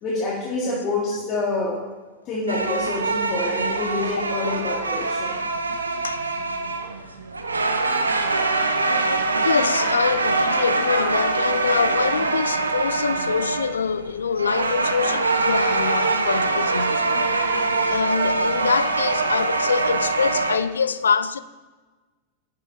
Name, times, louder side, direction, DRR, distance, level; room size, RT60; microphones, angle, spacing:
voice 1, 0.0-1.8 2.3-5.3, left 2 dB, 35° left, 2.0 m, -27 dB
sound 1, 2.5-20.6, right 3 dB, 80° right, 0.7 m, -23 dB
voice 2, 8.8-17.4 17.9-21.4, left 6 dB, 70° left, 0.4 m, -25 dB
11.0 x 8.6 x 3.1 m
figure-of-eight pair, 90°, 0 cm